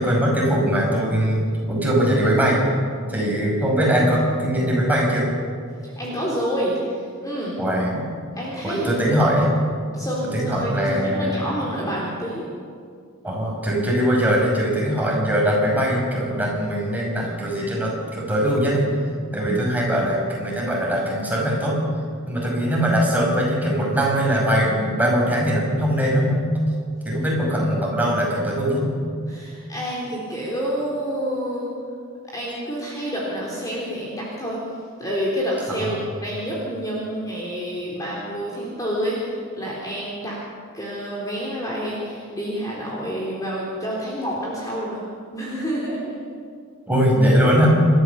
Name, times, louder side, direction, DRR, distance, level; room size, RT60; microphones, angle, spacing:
voice 1, 0.0-1.4 1.7-2.6 3.1-5.3 7.6-8.1 8.6-9.5 10.3-11.7 13.2-18.9 19.3-21.8 22.3-26.4 27.0-28.9 35.8-36.0 46.9-47.7, equal, 10° right, -3 dB, 5.7 m, -21 dB
voice 2, 5.8-7.6 8.4-9.3 9.9-12.5 29.3-31.7 32.3-40.4 40.7-45.0 45.3-46.2, equal, 15° left, -5 dB, 3.6 m, -28 dB
28.0 x 13.5 x 7.0 m, 2.2 s
head